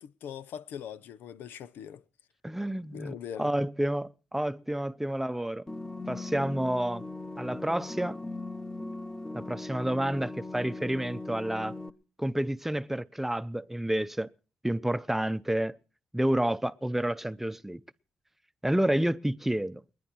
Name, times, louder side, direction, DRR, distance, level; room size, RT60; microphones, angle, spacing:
voice 1, 0.0-2.0 2.9-3.5, left 9 dB, 85° left, 0.8 m, -41 dB
voice 2, 2.4-5.6 6.1-7.0 7.4-8.2 9.3-11.7 12.2-14.3 14.6-15.8 16.1-17.8 18.6-19.8, right 1 dB, 10° right, 0.8 m, -29 dB
sound 1, 5.7-11.9, left 2 dB, 20° left, 1.4 m, -39 dB
29.5 x 10.5 x 4.5 m
cardioid pair, 65°, 3 cm